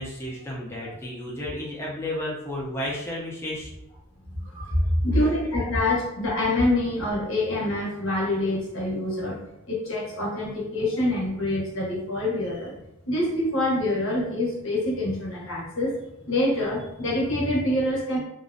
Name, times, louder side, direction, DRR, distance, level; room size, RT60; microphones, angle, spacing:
voice 1, 0.0-3.7 4.7-5.2, equal, 10° left, -5 dB, 0.4 m, -29 dB
voice 2, 4.4-4.7 5.0-9.4 9.7-16.0 16.3-18.2, left 1 dB, 65° left, -4 dB, 0.8 m, -26 dB
2.4 x 2.0 x 2.5 m, 0.84 s
head